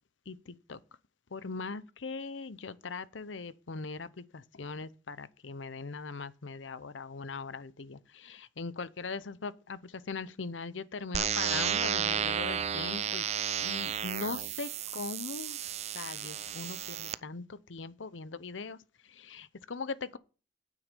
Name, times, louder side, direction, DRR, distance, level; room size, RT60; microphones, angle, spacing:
voice 1, 0.3-0.8 1.3-13.3 13.6-15.6 15.9-20.2, left 4 dB, 90° left, 0.8 m, -40 dB
sound 1, 11.1-17.1, right 8 dB, 35° right, 0.4 m, -33 dB
9.1 x 7.8 x 5.2 m
head